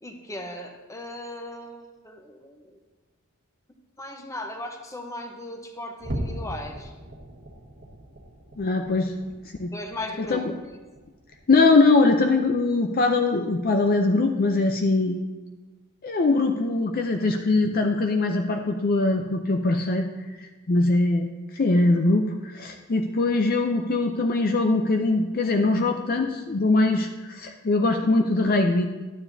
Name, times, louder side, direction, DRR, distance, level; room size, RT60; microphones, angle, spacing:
voice 1, 0.0-2.8 4.0-6.9 9.7-10.8, left 1 dB, 15° left, 3 dB, 0.9 m, -37 dB
sound 1, 6.0-12.7 13.0-13.3 13.7-13.9 14.4-14.6, equal, 45° right, 1.0 m, -39 dB
voice 2, 8.6-9.1 9.6-9.7 10.3-10.4 11.5-15.2 16.0-20.1 20.7-21.3 21.5-28.8, left 3 dB, 40° left, 4 dB, 0.5 m, -22 dB
12.0 x 9.5 x 2.7 m, 1.2 s
head